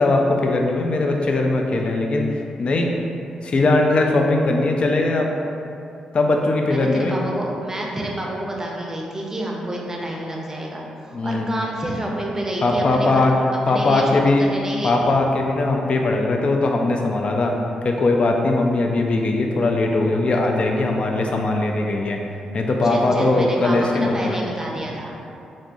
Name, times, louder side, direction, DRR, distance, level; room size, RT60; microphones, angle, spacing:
voice 1, 0.0-2.3 2.6-2.9 3.4-5.3 6.1-7.2 11.1-11.5 12.6-13.3 13.7-14.4 14.8-17.5 17.8-22.2 22.5-24.4, left 2 dB, 50° left, 1 dB, 0.4 m, -20 dB
voice 2, 6.7-13.3 13.7-15.1 22.8-25.2, right 1 dB, 20° right, -2 dB, 0.6 m, -29 dB
3.2 x 2.6 x 2.5 m, 2.6 s
supercardioid pair, 45°, 2 cm